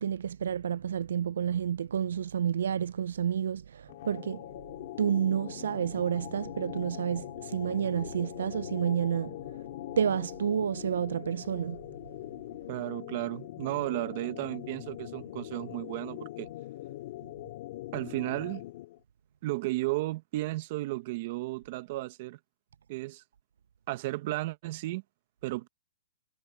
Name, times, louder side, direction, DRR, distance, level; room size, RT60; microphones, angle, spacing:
voice 1, 0.0-4.4 5.0-9.3 9.9-11.8, right 8 dB, 80° right, 0.3 m, -30 dB
sound 1, 3.9-19.0, left 15 dB, 45° left, 1.8 m, -42 dB
voice 2, 12.7-16.5 17.9-18.6 19.4-22.4 22.9-23.2 23.9-25.0 25.4-25.7, right 18 dB, 40° right, 1.1 m, -34 dB
hypercardioid pair, 160°, 0 cm